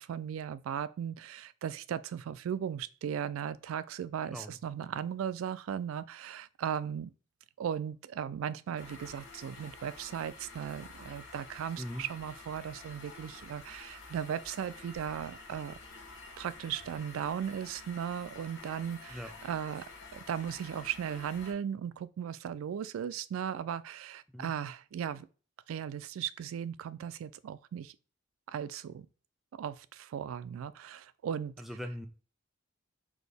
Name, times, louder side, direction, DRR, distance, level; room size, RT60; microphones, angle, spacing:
voice 1, 0.0-7.1 7.6-15.8 16.4-19.8 20.1-25.3 25.7-27.9 28.5-29.1 29.6-31.5, right 8 dB, 80° right, 0.3 m, -37 dB
voice 2, 4.3-4.6 11.8-12.0 19.1-19.3 24.3-24.5 31.6-32.1, equal, ahead, 0.4 m, -40 dB
sound 1, 8.8-21.5, left 3 dB, 60° left, 1.1 m, -50 dB
4.2 x 2.8 x 3.3 m
head